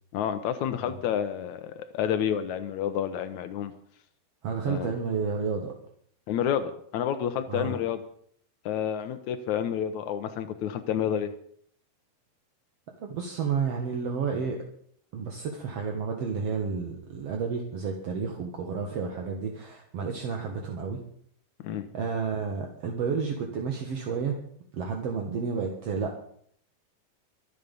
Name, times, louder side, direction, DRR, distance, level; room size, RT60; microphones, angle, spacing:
voice 1, 0.1-3.7 4.6-4.9 6.3-8.0 8.6-11.3 21.6-21.8, left 9 dB, 85° left, 10 dB, 1.6 m, -29 dB
voice 2, 4.4-5.7 7.5-7.8 13.0-14.6 15.1-21.0 21.9-24.4 24.7-26.2, right 5 dB, 55° right, 2 dB, 1.9 m, -31 dB
24.5 x 8.4 x 5.4 m, 0.64 s
omnidirectional pair, 4.7 m